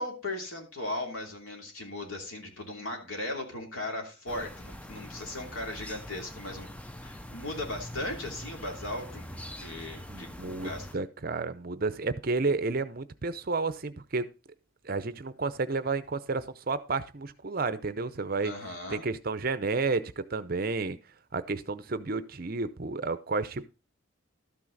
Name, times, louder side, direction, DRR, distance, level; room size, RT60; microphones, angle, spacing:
voice 1, 0.0-6.7 7.0-9.3 9.6-10.9 18.4-19.0, left 1 dB, 85° left, 3.1 m, -37 dB
sound 1, 4.3-11.0, left 1 dB, 5° left, 0.5 m, -44 dB
voice 2, 10.1-14.3 14.8-18.5 18.9-21.0 21.3-23.7, right 3 dB, 45° right, 0.6 m, -31 dB
12.5 x 6.1 x 4.0 m
head